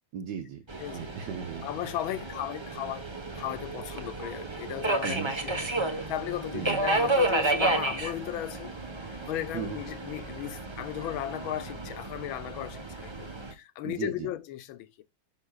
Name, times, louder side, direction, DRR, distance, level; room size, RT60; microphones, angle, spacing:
voice 1, 0.1-0.6 0.9-1.7 5.0-5.3 6.5-6.8 7.7-7.8 9.5-9.8 13.8-14.3, right 8 dB, 65° right, 1.3 m, -36 dB
Subway metro underground, 0.7-13.5, right 2 dB, 25° right, 0.6 m, -32 dB
voice 2, 1.6-3.1 3.3-8.7 9.0-15.0, left 13 dB, 80° left, 1.5 m, -36 dB
11.0 x 6.3 x 2.3 m
omnidirectional pair, 2.2 m